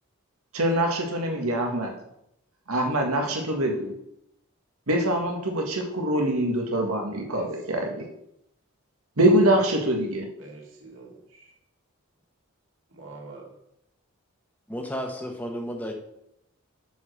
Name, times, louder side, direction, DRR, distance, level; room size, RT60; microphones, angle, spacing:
voice 1, 0.5-1.9 2.7-3.9 4.9-8.0 9.2-10.3, right 1 dB, 80° right, 2 dB, 1.8 m, -24 dB
voice 2, 7.3-7.8 10.4-11.5 12.9-13.5, right 3 dB, 60° right, -1 dB, 2.3 m, -44 dB
voice 3, 14.7-15.9, equal, 5° left, 2 dB, 1.2 m, -32 dB
9.1 x 5.1 x 6.4 m, 0.80 s
head